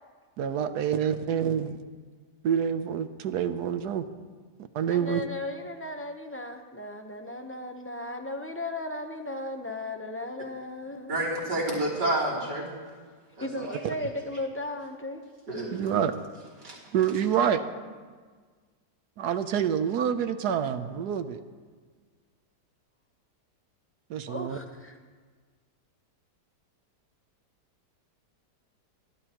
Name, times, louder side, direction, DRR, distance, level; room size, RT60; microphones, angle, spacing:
voice 1, 0.4-1.8 2.4-4.0 4.7-5.2 13.8-13.9 15.7-16.2 16.9-17.6 19.2-21.4 24.1-24.6, right 8 dB, 70° right, 10 dB, 1.3 m, -27 dB
voice 2, 4.9-11.2 13.4-15.2 24.3-24.9, left 1 dB, 15° left, 4 dB, 0.6 m, -36 dB
voice 3, 11.1-12.7 13.4-13.8 15.5-16.0 16.6-16.8, right 1 dB, 90° right, -5 dB, 3.9 m, -29 dB
27.5 x 12.0 x 3.0 m, 1.5 s
omnidirectional pair, 1.8 m